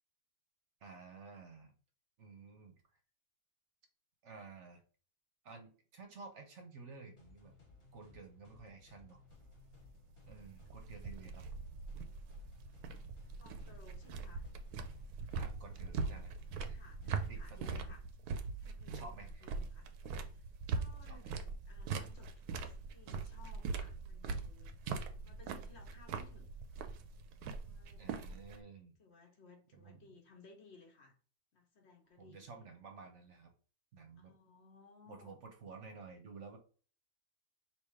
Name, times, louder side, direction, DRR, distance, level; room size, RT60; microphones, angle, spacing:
voice 1, 0.8-1.7 2.2-2.8 4.2-4.8 5.4-7.5 7.9-9.2 10.2-11.4 15.3-16.3 16.7-17.9 18.9-19.5 21.1-21.3 28.0-28.9 29.7-30.1 32.2-33.5 33.9-34.3 35.1-36.6, right 4 dB, 55° right, 4 dB, 1.0 m, -53 dB
sound 1, 7.2-17.5, left 3 dB, 25° left, 0.7 m, -61 dB
sound 2, 9.3-28.6, right 4 dB, 80° right, 1.1 m, -42 dB
voice 2, 13.4-14.5 16.7-18.0 18.6-19.9 20.3-21.3 21.7-24.7 25.2-26.5 27.6-28.1 29.0-31.2 31.5-32.5 34.2-35.4, left 3 dB, 50° left, 3 dB, 1.0 m, -61 dB
3.4 x 2.9 x 4.6 m, 0.40 s
omnidirectional pair, 1.6 m